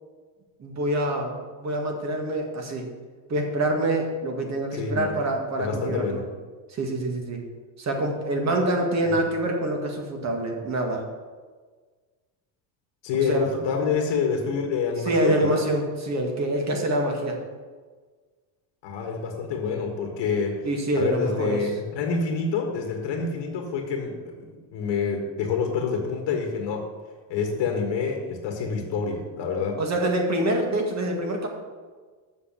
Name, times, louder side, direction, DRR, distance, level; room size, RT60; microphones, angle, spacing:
voice 1, 0.6-2.9 3.3-6.2 6.7-7.4 7.8-11.0 13.3-13.6 15.1-17.4 20.6-21.7 29.8-31.5, right 1 dB, 35° right, 2 dB, 2.0 m, -26 dB
voice 2, 4.7-5.2 5.6-6.2 13.0-15.7 18.8-20.7 21.0-26.8 27.3-29.8, left 5 dB, 60° left, 2 dB, 1.7 m, -27 dB
7.4 x 6.3 x 7.8 m, 1.5 s
cardioid pair, 125°, 49 cm